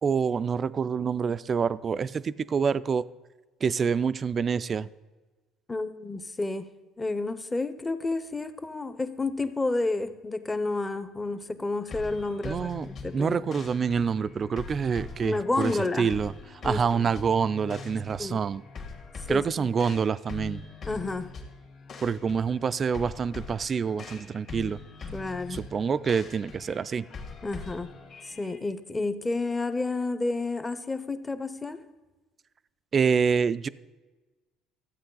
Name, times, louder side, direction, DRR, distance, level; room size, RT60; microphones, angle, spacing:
voice 1, 0.0-3.1 3.6-4.9 12.4-12.9 13.1-18.6 19.3-20.6 22.0-24.8 25.5-27.1 32.9-33.7, right 6 dB, 35° right, 16 dB, 0.3 m, -27 dB
voice 2, 5.7-6.7 7.0-12.7 13.0-13.4 15.2-16.1 16.6-17.1 18.2-18.4 19.3-19.7 20.8-21.3 25.1-25.6 27.4-27.9 28.2-31.8, left 3 dB, 15° left, 12 dB, 0.7 m, -30 dB
sound 1, 11.9-28.6, left 4 dB, 50° left, 1.8 m, -43 dB
13.0 x 8.2 x 3.9 m, 1.2 s
cardioid pair, 105°, 0 cm